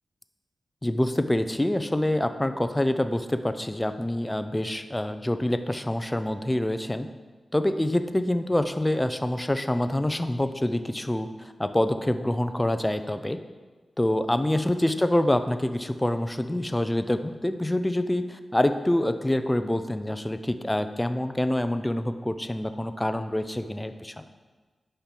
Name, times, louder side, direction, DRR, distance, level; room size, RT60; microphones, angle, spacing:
voice 1, 0.8-7.1 7.5-13.4 14.0-24.2, left 1 dB, 10° left, 9 dB, 0.4 m, -26 dB
10.5 x 4.4 x 5.3 m, 1.4 s
wide cardioid pair, 135°, 0 cm